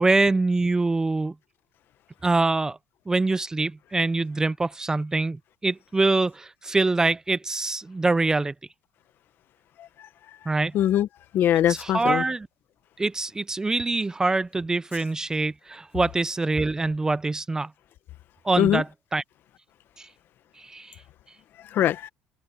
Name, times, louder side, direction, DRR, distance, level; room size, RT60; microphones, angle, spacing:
voice 1, 0.0-1.3 2.2-2.8 3.1-8.5 10.5-10.7 11.7-12.5 13.0-17.7 18.4-18.9 19.1-19.2 20.0-20.1 20.6-21.0, right 3 dB, 15° right, 0.6 m, -24 dB
voice 2, 10.7-11.1 11.3-12.2 18.6-18.8 21.7-22.1, left 11 dB, 55° left, 1.3 m, -22 dB
supercardioid pair, 100°, 4 cm